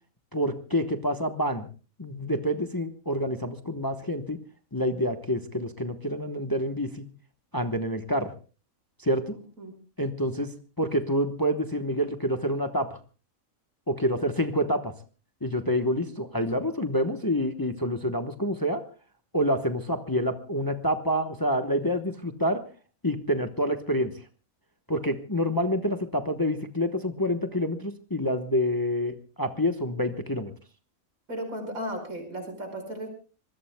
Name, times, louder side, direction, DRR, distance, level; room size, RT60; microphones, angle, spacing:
voice 1, 0.3-1.7 2.0-4.4 4.7-7.1 7.5-8.3 9.0-9.4 10.0-13.0 13.9-14.9 15.4-18.8 19.3-22.6 23.0-24.1 24.9-30.5, equal, 15° left, 7 dB, 1.0 m, -27 dB
voice 2, 9.3-9.7 31.3-33.1, equal, 80° right, 5 dB, 5.4 m, -35 dB
26.0 x 21.0 x 2.2 m, 0.35 s
omnidirectional pair, 1.4 m